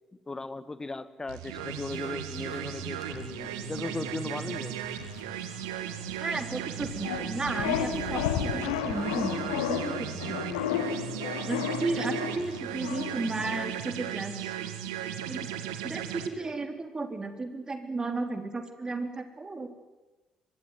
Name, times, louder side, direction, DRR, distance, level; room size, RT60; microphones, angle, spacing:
voice 1, 0.3-4.8, left 3 dB, 20° left, 14 dB, 1.7 m, -37 dB
sound 1, 1.3-16.3, right 11 dB, 70° right, 1.7 m, -36 dB
sound 2, 1.6-13.8, left 9 dB, 70° left, 1.5 m, -35 dB
voice 2, 6.2-10.8 11.5-14.5 15.3-15.5 15.8-19.7, right 3 dB, 25° right, 7 dB, 3.6 m, -34 dB
24.0 x 20.0 x 9.5 m, 1.1 s
figure-of-eight pair, 50°, 3 cm